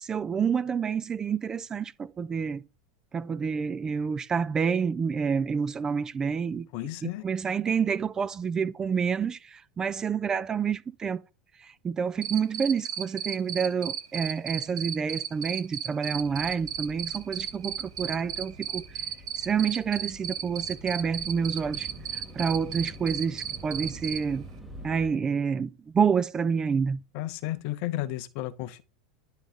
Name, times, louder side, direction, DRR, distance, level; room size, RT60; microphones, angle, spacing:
voice 1, 0.0-2.6 3.1-6.7 7.0-11.2 11.6-19.0 19.4-24.4 24.8-27.0, right 6 dB, 25° right, 0.3 m, -28 dB
voice 2, 6.7-7.2 27.1-28.8, left 15 dB, 55° left, 0.6 m, -33 dB
Cricket, 12.2-24.2, right 9 dB, 75° right, 0.6 m, -33 dB
sound 1, 16.1-25.1, right 1 dB, 5° right, 2.5 m, -46 dB
10.0 x 3.9 x 3.6 m
figure-of-eight pair, 85°, 3 cm